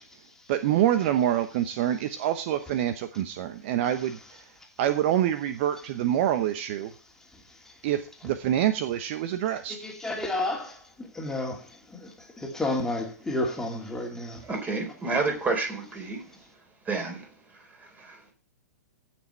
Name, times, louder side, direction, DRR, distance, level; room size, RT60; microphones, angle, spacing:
voice 1, 0.5-4.4 4.8-6.9 7.8-9.8, right 11 dB, 45° right, 0.9 m, -26 dB
voice 2, 9.8-10.7 11.1-11.6 12.0-12.1 12.4-14.4, left 2 dB, 5° left, 2.6 m, -30 dB
voice 3, 14.4-16.2 16.8-18.3, right 3 dB, 20° right, 4.0 m, -30 dB
16.5 x 6.2 x 4.5 m
figure-of-eight pair, 110°, 9 cm